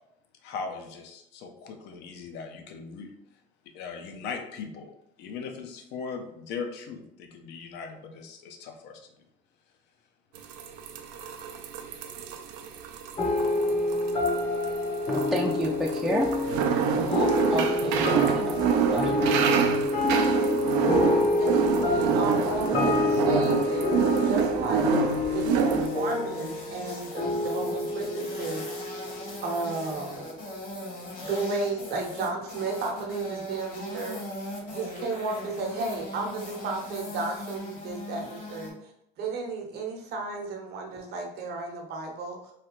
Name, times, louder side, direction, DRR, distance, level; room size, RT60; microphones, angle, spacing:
voice 1, 0.4-3.1 3.7-4.9 5.2-9.1, left 5 dB, 75° left, 5 dB, 0.6 m, -39 dB
sound 1, 10.4-25.9, right 7 dB, 85° right, 0.4 m, -27 dB
sound 2, 13.2-30.0, left 2 dB, 35° left, 0.7 m, -27 dB
voice 2, 15.1-16.3 16.9-19.5, equal, ahead, -2 dB, 0.3 m, -31 dB
voice 3, 21.4-24.9 25.3-29.1 29.4-30.4 31.2-34.2 34.7-38.8 39.2-42.5, right 3 dB, 65° right, 1 dB, 0.8 m, -33 dB
sound 3, 25.1-38.7, left 1 dB, 50° left, 1.2 m, -40 dB
3.2 x 2.4 x 2.9 m, 0.79 s
cardioid pair, 100°, 18 cm